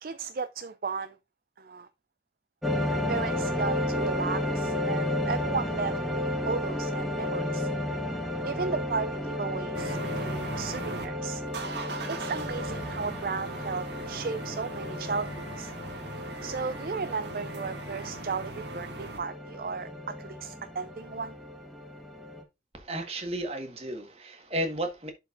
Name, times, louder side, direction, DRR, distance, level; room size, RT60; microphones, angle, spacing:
voice 1, 0.0-1.2 1.6-1.9 3.1-7.7 8.4-11.4 12.1-15.7 16.4-21.4, right 5 dB, 55° right, 0.4 m, -35 dB
sound 1, 2.6-22.4, left 1 dB, ahead, 1.3 m, -33 dB
sound 2, 9.7-11.1 11.5-19.2, right 3 dB, 75° right, 1.6 m, -40 dB
voice 2, 22.7-25.1, right 1 dB, 35° right, 1.6 m, -33 dB
11.5 x 4.5 x 2.5 m
head